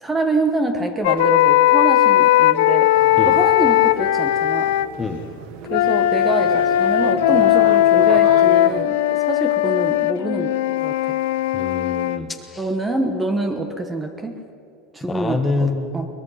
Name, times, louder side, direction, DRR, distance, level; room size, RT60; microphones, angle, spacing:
voice 1, 0.0-2.9 3.2-4.8 5.6-11.2 12.6-14.3 14.9-15.7 15.9-16.1, right 2 dB, 10° right, 6 dB, 1.2 m, -25 dB
sound 1, 1.0-4.9 5.7-12.2, left 13 dB, 85° left, 0.8 m, -17 dB
sound 2, 2.9-8.8, right 10 dB, 60° right, 1.0 m, -35 dB
voice 2, 11.5-12.6 15.0-15.9, left 3 dB, 15° left, 6 dB, 1.4 m, -25 dB
22.0 x 20.5 x 5.8 m, 2.5 s
supercardioid pair, 150°, 0 cm